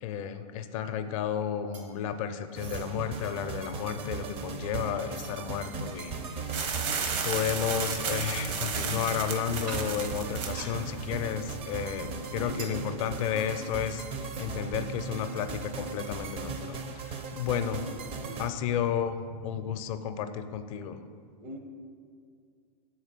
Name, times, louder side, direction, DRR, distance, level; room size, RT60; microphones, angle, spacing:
voice 1, 0.0-6.6 7.2-17.9 18.4-21.0, left 9 dB, 55° left, 10 dB, 0.5 m, -32 dB
sound 1, 1.7-2.2 2.5-2.9 3.6-5.4 5.9-6.0 7.0-7.2 7.8-8.1 9.7-9.9 10.4-11.3 11.6-14.7 15.0-15.1 15.3-15.5 16.2-16.3, right 2 dB, 85° right, 2.1 m, -47 dB
sound 2, 2.5-18.5, right 4 dB, 30° right, 0.5 m, -38 dB
sound 3, 6.5-12.1, right 6 dB, 50° right, 0.9 m, -34 dB
voice 2, 12.4-13.6 17.9-18.5 21.4-21.6, equal, 70° right, 3 dB, 1.3 m, -44 dB
7.0 x 4.4 x 6.6 m, 2.2 s
hypercardioid pair, 130°, 21 cm